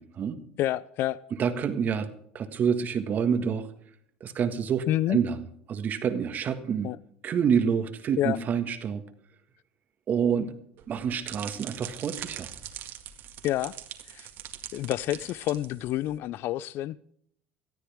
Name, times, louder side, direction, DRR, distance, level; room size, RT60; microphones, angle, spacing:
voice 1, 0.0-0.4 1.4-2.1 2.3-3.7 4.2-5.4 5.7-6.9 7.2-9.0 10.1-10.5 10.9-12.5, right 7 dB, 45° right, 8 dB, 1.7 m, -27 dB
voice 2, 0.6-1.2 4.9-5.2 6.8-7.0 8.2-8.4 13.4-13.7 14.1-14.3 14.7-17.0, left 14 dB, 60° left, 20 dB, 0.4 m, -28 dB
sound 1, 10.8-16.2, right 11 dB, 60° right, 1.9 m, -42 dB
19.0 x 13.0 x 3.6 m, 0.66 s
supercardioid pair, 95°, 4 cm